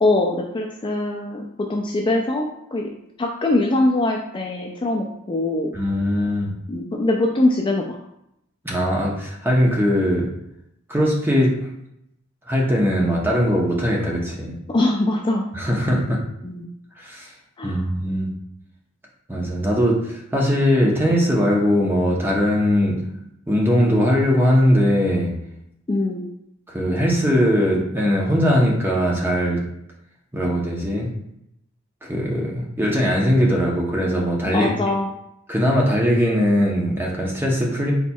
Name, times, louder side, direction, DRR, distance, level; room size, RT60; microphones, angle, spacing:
voice 1, 0.0-2.9 3.2-5.7 6.7-8.0 14.7-15.5 16.4-16.7 17.6-17.8 25.9-26.3 34.5-35.1, left 2 dB, 25° left, 0 dB, 0.3 m, -22 dB
voice 2, 5.7-6.5 8.6-10.3 10.9-11.6 12.5-14.6 15.5-16.2 17.0-17.3 17.6-18.3 19.3-23.0 23.5-25.3 26.7-29.6 30.3-31.1 32.0-34.7 35.5-37.9, equal, 10° right, -2 dB, 0.8 m, -20 dB
4.3 x 4.1 x 2.3 m, 0.79 s
head